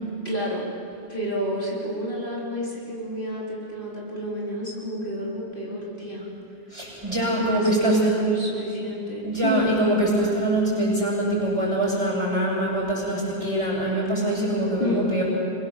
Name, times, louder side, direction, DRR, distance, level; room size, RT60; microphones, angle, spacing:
voice 1, 0.2-0.7 1.1-6.2 7.4-9.7 14.8-15.1, equal, 45° left, -5 dB, 3.8 m, -29 dB
voice 2, 6.7-8.0 9.2-15.2, right 1 dB, 25° right, -4 dB, 7.9 m, -24 dB
26.5 x 22.5 x 7.3 m, 2.7 s
omnidirectional pair, 1.2 m